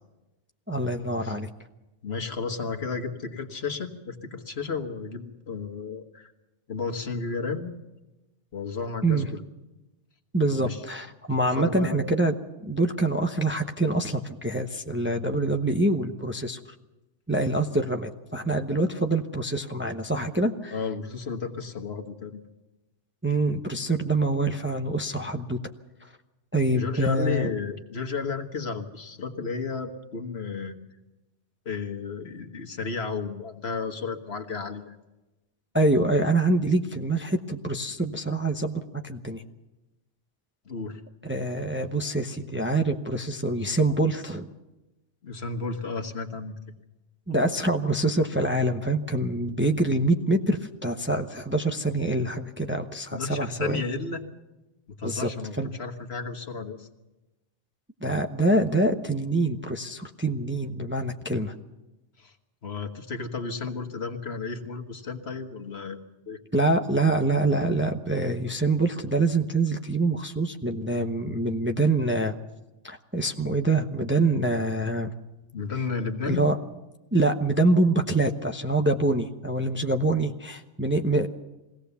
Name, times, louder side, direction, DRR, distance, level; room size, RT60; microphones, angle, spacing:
voice 1, 0.7-1.5 9.0-9.3 10.3-12.3 12.6-16.6 17.3-20.7 23.2-25.6 26.5-27.5 35.7-39.4 41.3-44.5 47.3-53.8 55.0-55.3 55.6-55.7 58.0-61.5 66.5-72.3 72.8-75.1 76.3-76.6 77.1-81.3, right 2 dB, 10° right, 5 dB, 0.9 m, -25 dB
voice 2, 2.0-6.3 6.7-7.7 8.5-9.4 10.6-10.8 11.4-12.0 20.7-22.4 26.7-30.8 31.7-35.0 40.7-41.0 45.2-46.5 53.1-54.2 55.0-56.9 62.2-62.3 62.6-66.4 75.5-76.4, left 4 dB, 60° left, 4 dB, 1.7 m, -33 dB
22.5 x 17.0 x 7.0 m, 1.0 s
omnidirectional pair, 1.2 m